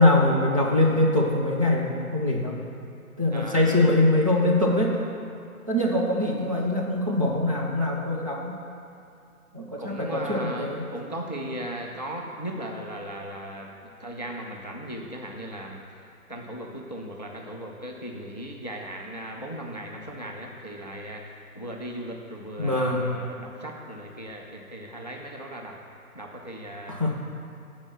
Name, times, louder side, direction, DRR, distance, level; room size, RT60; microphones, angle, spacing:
voice 1, 0.0-2.6 3.2-5.0 5.7-8.5 9.5-10.8 22.6-23.1 26.9-27.1, left 2 dB, 25° right, -4 dB, 0.5 m, -23 dB
voice 2, 3.3-3.9 9.8-25.8 26.1-26.9, right 1 dB, 30° left, 0 dB, 0.4 m, -37 dB
10.0 x 4.4 x 6.1 m, 2.5 s
figure-of-eight pair, 150°, 45 cm